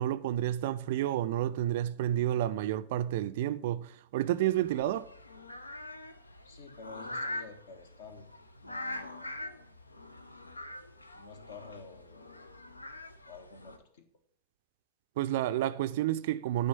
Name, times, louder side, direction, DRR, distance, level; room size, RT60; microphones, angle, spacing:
voice 1, 0.0-5.1 15.2-16.7, right 12 dB, 55° right, 0.4 m, -30 dB
sound 1, 4.2-13.8, left 1 dB, 80° left, 0.6 m, -43 dB
voice 2, 6.4-8.3 8.6-9.3 11.1-12.5 13.3-14.0, left 4 dB, 55° left, 1.2 m, -50 dB
9.2 x 3.8 x 6.8 m
figure-of-eight pair, 90°, 0 cm